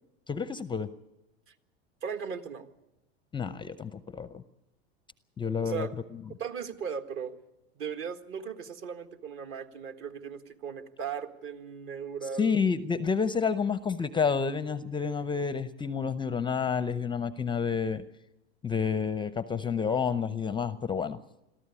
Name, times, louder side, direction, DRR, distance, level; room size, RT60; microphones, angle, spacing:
voice 1, 0.3-0.9 3.3-4.4 5.4-5.9 12.4-18.0 18.6-21.2, left 6 dB, 15° left, 13 dB, 0.6 m, -29 dB
voice 2, 2.0-2.7 5.6-5.9 6.4-7.3 7.8-12.6, right 7 dB, 40° right, 7 dB, 1.8 m, -37 dB
22.0 x 14.0 x 8.4 m, 0.96 s
hypercardioid pair, 105°, 31 cm